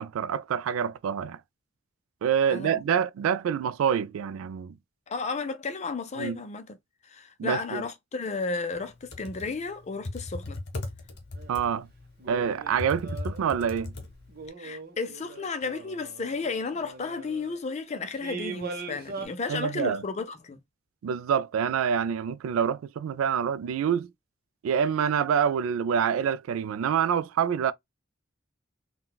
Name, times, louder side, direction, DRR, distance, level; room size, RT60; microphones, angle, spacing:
voice 1, 0.0-1.4 2.2-4.8 6.2-6.4 7.4-7.8 11.5-11.9 12.3-13.9 19.5-20.0 21.0-24.1 24.6-27.7, right 7 dB, 85° right, 0.3 m, -26 dB
voice 2, 2.5-2.8 5.1-6.8 7.0-10.6 14.6-20.6, left 4 dB, 35° left, 0.5 m, -33 dB
Computer keyboard, 8.9-14.5, left 2 dB, 55° left, 0.8 m, -38 dB
sound 1, 11.4-11.6 12.2-13.9 14.3-17.6 18.2-19.3, right 4 dB, 50° right, 0.7 m, -41 dB
3.8 x 2.2 x 2.2 m
head